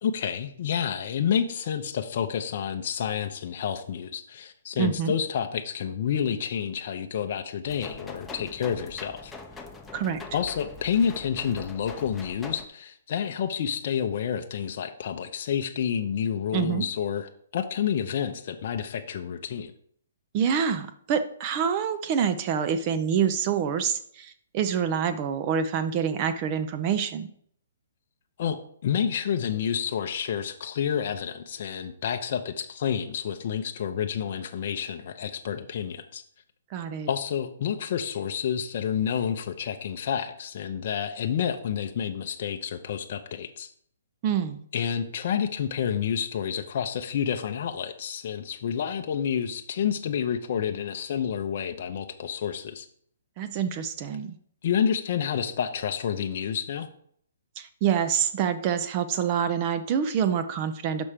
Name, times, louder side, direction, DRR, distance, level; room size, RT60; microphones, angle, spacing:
voice 1, 0.0-9.3 10.3-19.7 28.4-28.6 28.8-36.2 37.1-43.7 44.7-52.9 54.6-56.9, left 8 dB, 50° left, 5 dB, 0.6 m, -29 dB
voice 2, 4.8-5.1 9.9-10.2 16.5-16.8 20.3-27.3 36.7-37.1 44.2-44.6 53.4-54.4 57.6-61.1, right 7 dB, 35° right, 10 dB, 0.5 m, -26 dB
sound 1, 7.6-12.7, left 3 dB, 10° left, 0.7 m, -43 dB
6.1 x 4.2 x 5.0 m, 0.63 s
hypercardioid pair, 145°, 0 cm